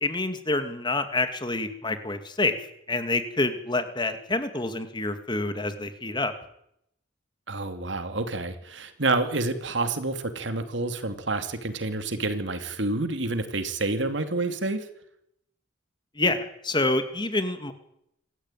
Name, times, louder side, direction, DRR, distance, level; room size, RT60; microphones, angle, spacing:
voice 1, 0.0-2.5 2.9-6.3 16.2-17.7, left 2 dB, 25° left, 9 dB, 2.3 m, -27 dB
voice 2, 7.5-14.8, right 2 dB, 75° right, 8 dB, 2.8 m, -28 dB
27.0 x 14.5 x 9.2 m, 0.76 s
head